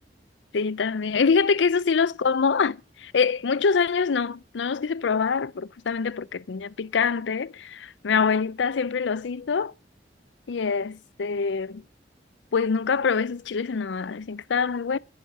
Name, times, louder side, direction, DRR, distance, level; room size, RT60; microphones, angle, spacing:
voice 1, 0.5-9.7 10.5-11.8 12.5-15.0, left 5 dB, 90° left, 0.5 m, -25 dB
11.0 x 10.0 x 5.4 m
head